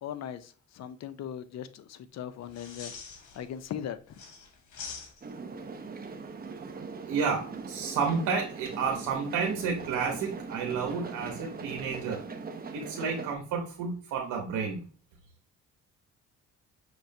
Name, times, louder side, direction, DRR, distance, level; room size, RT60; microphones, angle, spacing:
voice 1, 0.0-2.9 3.3-4.2, left 9 dB, 60° left, 12 dB, 0.5 m, -39 dB
sound 1, 2.4-3.7 4.1-5.5 8.0-8.4, left 5 dB, 75° left, 1.2 m, -45 dB
sound 2, 5.2-13.3, right 4 dB, 30° right, 0.7 m, -41 dB
voice 2, 7.1-12.3 12.7-14.8, right 5 dB, 85° right, 2 dB, 0.9 m, -31 dB
5.9 x 3.2 x 2.7 m, 0.39 s
cardioid pair, 90°, 30 cm